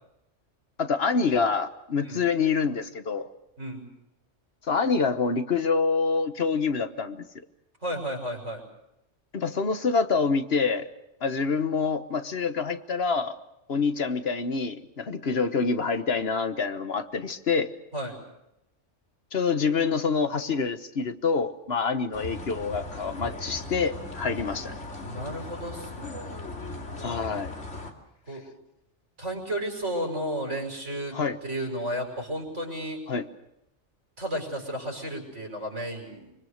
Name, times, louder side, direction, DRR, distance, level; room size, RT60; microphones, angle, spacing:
voice 1, 0.8-3.3 4.7-7.2 9.3-10.9 11.2-13.4 13.7-17.7 19.3-24.7 27.0-27.5 31.1-31.4 33.1-33.3, left 5 dB, 60° left, 10 dB, 1.4 m, -26 dB
voice 2, 3.6-3.9 7.8-8.7 17.9-18.2 25.0-26.4 28.3-28.5 29.2-31.2 31.4-33.0 34.2-36.3, equal, 75° right, 2 dB, 6.0 m, -33 dB
sound 1, 22.1-27.9, left 2 dB, 80° left, 2.9 m, -38 dB
25.0 x 24.0 x 6.6 m, 0.86 s
omnidirectional pair, 1.2 m